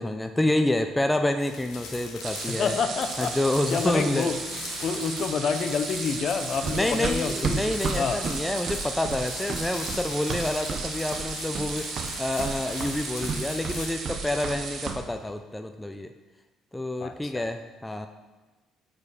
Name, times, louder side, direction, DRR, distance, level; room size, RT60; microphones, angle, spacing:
voice 1, 0.0-2.8 3.2-4.3 6.7-16.1 16.7-18.1, left 1 dB, 10° left, 7 dB, 0.4 m, -28 dB
sound 1, 1.4-15.4, left 4 dB, 80° left, 1.3 m, -42 dB
sound 2, 2.2-14.9, right 4 dB, 65° right, 1.2 m, -35 dB
voice 2, 2.6-3.3 3.7-4.4 4.8-7.6 8.0-8.2 17.0-17.5, left 5 dB, 50° left, 8 dB, 0.6 m, -28 dB
Run, 6.6-10.9 11.1-11.7 12.0-14.6 14.9-15.0, right 5 dB, 45° right, 0.7 m, -32 dB
7.1 x 5.0 x 4.8 m, 1.2 s
cardioid pair, 105°, 0 cm